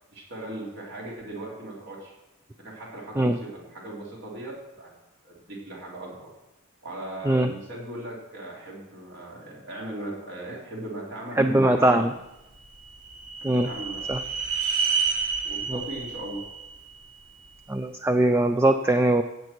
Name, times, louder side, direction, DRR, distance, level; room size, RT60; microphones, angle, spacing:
voice 1, 0.1-2.1 2.5-4.9 5.2-6.3 6.8-12.1 13.5-14.2 15.4-16.4, right 1 dB, 55° right, -4 dB, 3.7 m, -38 dB
voice 2, 11.4-12.1 13.4-13.7 14.1-14.2 15.7-15.8 17.7-19.2, right 1 dB, 10° right, 7 dB, 0.4 m, -21 dB
sound 1, 12.4-17.6, right 5 dB, 80° right, 3.0 m, -30 dB
16.0 x 8.0 x 4.5 m, 0.97 s
head